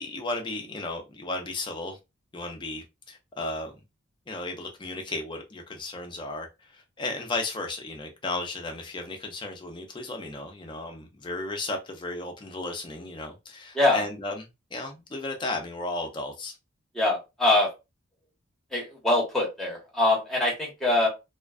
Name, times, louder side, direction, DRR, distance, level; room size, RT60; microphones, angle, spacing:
voice 1, 0.0-2.0 2.3-3.7 4.3-16.6, left 2 dB, 20° left, 0.4 m, -34 dB
voice 2, 16.9-17.7 18.7-21.1, left 2 dB, ahead, 0.9 m, -23 dB
2.5 x 2.2 x 2.3 m
head